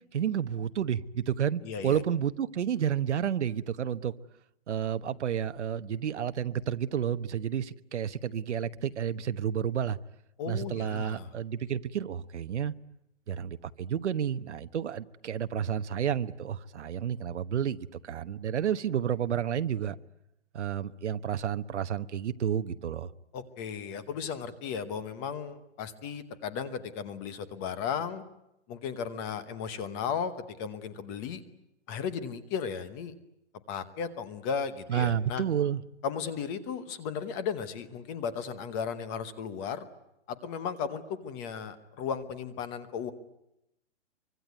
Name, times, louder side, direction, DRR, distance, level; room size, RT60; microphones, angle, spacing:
voice 1, 0.1-4.1 4.7-10.0 10.5-12.7 13.3-20.0 20.5-23.1 34.9-35.8, right 9 dB, 70° right, 12 dB, 1.2 m, -31 dB
voice 2, 1.6-2.0 10.4-11.3 23.3-28.2 28.7-31.4 31.9-33.1 33.7-35.4 36.0-39.9 40.3-43.1, left 7 dB, 15° left, 13 dB, 1.0 m, -35 dB
24.5 x 24.5 x 9.5 m, 0.84 s
hypercardioid pair, 165°, 36 cm